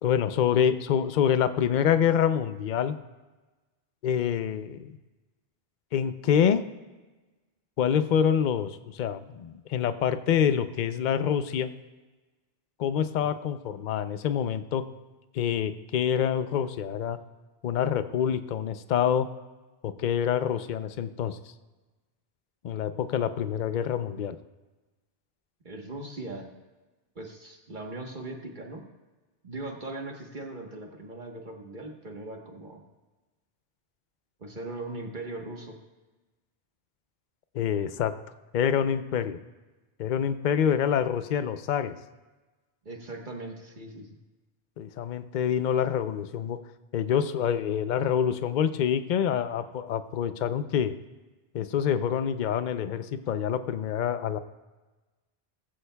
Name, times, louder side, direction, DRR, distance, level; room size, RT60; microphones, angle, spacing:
voice 1, 0.0-3.0 4.0-4.9 5.9-6.6 7.8-11.7 12.8-14.8 15.3-17.2 17.6-19.3 19.8-21.4 22.6-24.4 37.5-38.1 38.5-39.4 40.0-41.9 44.8-46.6 46.9-50.9 51.5-54.4, left 8 dB, 55° left, 11 dB, 0.7 m, -26 dB
voice 2, 25.6-26.5 27.1-28.8 29.4-32.8 34.4-35.8 42.8-44.2, right 2 dB, 50° right, 1 dB, 1.4 m, -39 dB
18.0 x 15.0 x 2.3 m, 1.2 s
omnidirectional pair, 1.0 m